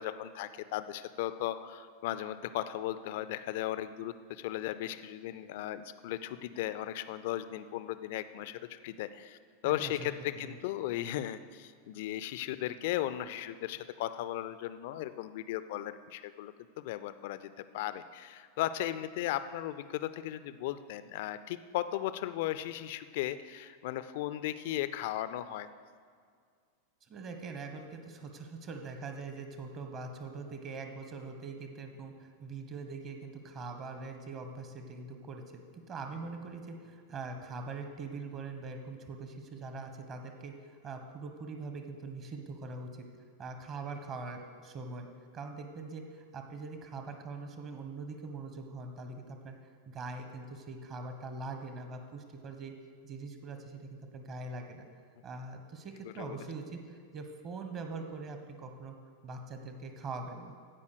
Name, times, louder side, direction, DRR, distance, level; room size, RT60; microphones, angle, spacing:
voice 1, 0.0-9.4 9.6-25.7 56.2-56.4, left 13 dB, 50° left, 13 dB, 0.5 m, -36 dB
voice 2, 27.1-43.0 43.4-45.1 45.3-49.6 49.9-52.7 53.0-54.9 55.2-58.9 59.2-60.5, right 3 dB, 30° right, 6 dB, 1.3 m, -43 dB
15.5 x 5.4 x 6.5 m, 2.1 s
figure-of-eight pair, 90°, 0 cm